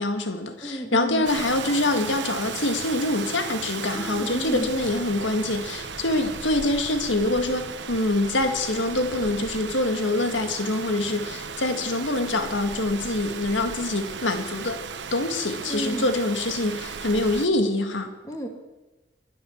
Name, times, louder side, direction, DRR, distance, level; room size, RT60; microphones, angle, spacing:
voice 1, 0.0-14.8 15.1-18.1, left 2 dB, 85° left, 7 dB, 1.8 m, -25 dB
voice 2, 0.6-1.3 3.9-4.7 15.7-16.1 18.2-18.5, right 1 dB, 15° left, 3 dB, 2.0 m, -31 dB
Rain, 1.2-17.5, right 5 dB, 70° right, 0.9 m, -36 dB
23.5 x 7.8 x 7.2 m, 1.1 s
head